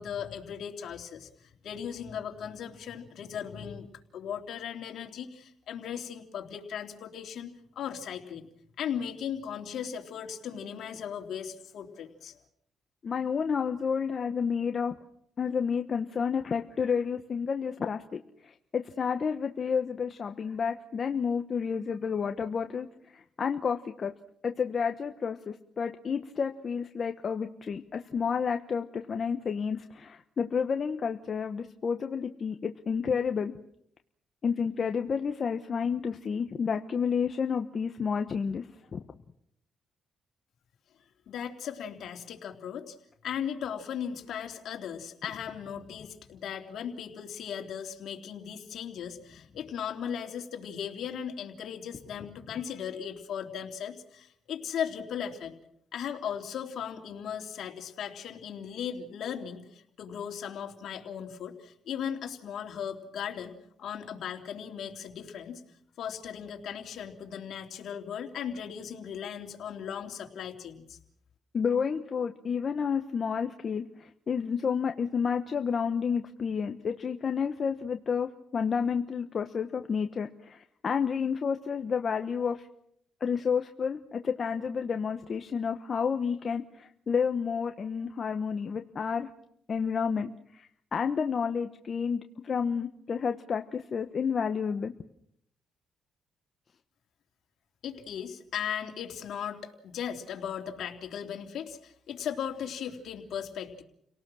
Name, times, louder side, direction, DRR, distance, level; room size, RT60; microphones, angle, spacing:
voice 1, 0.0-3.9 4.1-8.5 8.8-12.4 41.3-43.0 43.2-55.6 55.9-65.6 66.0-71.0 97.8-103.8, left 8 dB, 70° left, 3 dB, 3.3 m, -37 dB
voice 2, 13.0-14.9 15.4-24.1 24.4-33.5 34.4-38.7 38.9-39.0 71.5-82.7 83.2-89.3 89.7-94.9, left 6 dB, 45° left, 6 dB, 1.2 m, -30 dB
30.0 x 18.5 x 6.4 m, 0.70 s
cardioid pair, 90°, 0 cm